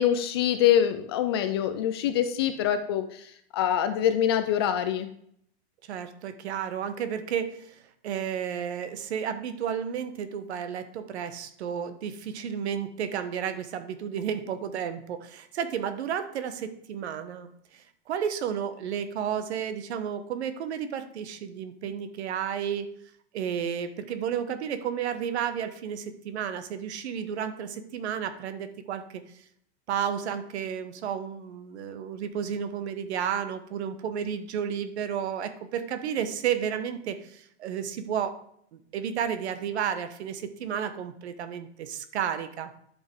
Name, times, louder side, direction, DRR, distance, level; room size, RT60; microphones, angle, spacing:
voice 1, 0.0-5.1, left 10 dB, 25° left, 9 dB, 0.3 m, -25 dB
voice 2, 5.9-22.9 23.3-29.4 29.9-38.3 38.7-42.7, right 8 dB, 80° right, 10 dB, 1.4 m, -32 dB
11.0 x 5.6 x 4.7 m, 0.68 s
supercardioid pair, 170°, 33 cm